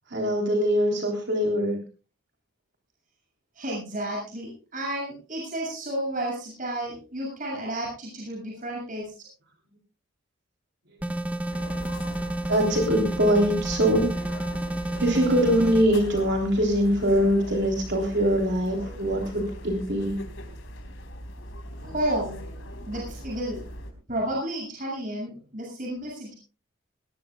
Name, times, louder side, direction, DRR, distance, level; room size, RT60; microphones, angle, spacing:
voice 1, 0.1-1.8 11.4-11.6 12.5-14.1 15.0-20.2, equal, 55° right, 2 dB, 3.5 m, -23 dB
voice 2, 3.6-9.0 21.8-22.4 22.9-23.6 24.1-26.4, right 1 dB, 40° right, -2 dB, 7.2 m, -31 dB
sound 1, 11.0-15.9, right 1 dB, 5° right, 1.1 m, -30 dB
sound 2, 11.5-23.9, equal, 70° left, 4.1 m, -40 dB
20.5 x 19.0 x 2.4 m, 0.34 s
head